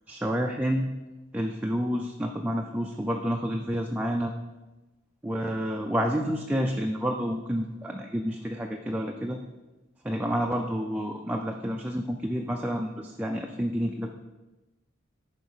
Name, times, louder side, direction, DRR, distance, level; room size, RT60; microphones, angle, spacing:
voice 1, 0.1-0.9 1.3-4.3 5.2-9.4 10.0-14.1, equal, 10° right, 2 dB, 0.4 m, -29 dB
11.0 x 4.4 x 5.5 m, 1.1 s
head